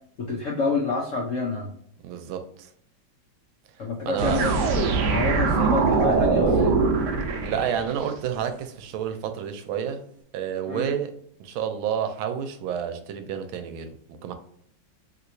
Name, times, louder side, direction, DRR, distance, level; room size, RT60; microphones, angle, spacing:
voice 1, 0.2-1.7 3.8-4.5 5.0-6.7 10.7-10.9, left 3 dB, 80° left, 0.6 m, -28 dB
voice 2, 2.0-2.7 4.1-4.4 7.4-10.0 10.3-11.1 11.4-13.9 14.2-14.3, right 8 dB, 90° right, 1.4 m, -29 dB
sound 1, 4.2-8.1, right 4 dB, 70° right, 1.0 m, -22 dB
3.2 x 2.9 x 2.6 m
omnidirectional pair, 2.2 m